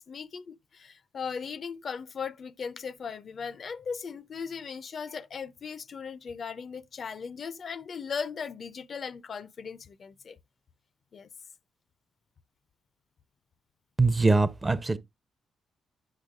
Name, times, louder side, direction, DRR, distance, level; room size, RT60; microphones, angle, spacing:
voice 1, 0.0-10.4 11.1-11.3, left 6 dB, 50° left, 0.4 m, -38 dB
voice 2, 14.0-15.0, right 3 dB, 25° right, 0.5 m, -23 dB
8.4 x 6.5 x 2.3 m
cardioid pair, 80°, 0 cm